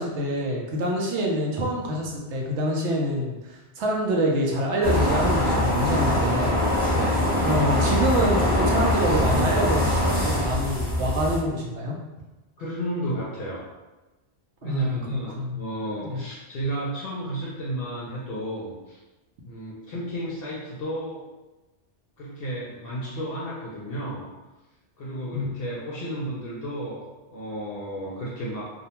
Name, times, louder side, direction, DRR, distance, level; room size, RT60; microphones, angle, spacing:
voice 1, 0.0-6.6 7.4-12.0 14.6-15.6 16.0-16.2 25.3-25.5, equal, 75° right, -1 dB, 0.9 m, -26 dB
sound 1, 4.8-11.4, left 1 dB, 15° right, 0.4 m, -23 dB
voice 2, 6.9-7.3 10.9-11.1 12.6-13.6 14.6-19.0 19.4-21.2 22.2-24.2 25.0-28.7, right 1 dB, 65° left, -6 dB, 0.7 m, -32 dB
2.6 x 2.1 x 2.8 m, 1.1 s
omnidirectional pair, 1.2 m